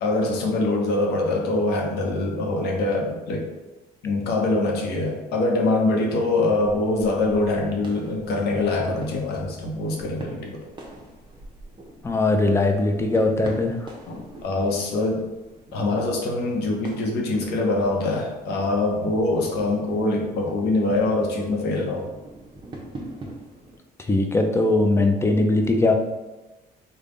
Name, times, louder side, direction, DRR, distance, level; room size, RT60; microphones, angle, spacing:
voice 1, 0.0-3.5 4.0-10.6 14.1-15.3 15.7-22.1, left 2 dB, 75° left, 0 dB, 0.8 m, -24 dB
sound 1, 6.6-23.8, right 1 dB, 30° right, 0.7 m, -42 dB
voice 2, 12.0-13.8 24.1-25.9, left 2 dB, 15° left, 4 dB, 0.4 m, -20 dB
3.5 x 2.2 x 3.7 m, 1.1 s
cardioid pair, 110°, 17 cm